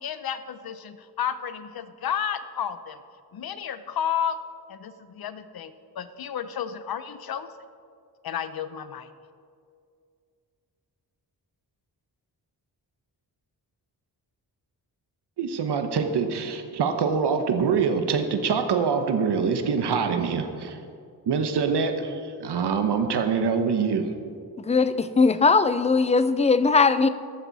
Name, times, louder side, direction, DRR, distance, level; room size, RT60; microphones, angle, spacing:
voice 1, 0.0-3.0 3.3-4.4 4.7-7.5 8.2-9.1, left 8 dB, 65° left, 12 dB, 0.8 m, -32 dB
voice 2, 15.4-20.8 21.3-24.0, right 5 dB, 80° right, 6 dB, 1.2 m, -25 dB
voice 3, 24.6-27.1, left 4 dB, 20° left, 12 dB, 0.4 m, -20 dB
13.5 x 13.5 x 4.1 m, 2.3 s
wide cardioid pair, 175°, 40 cm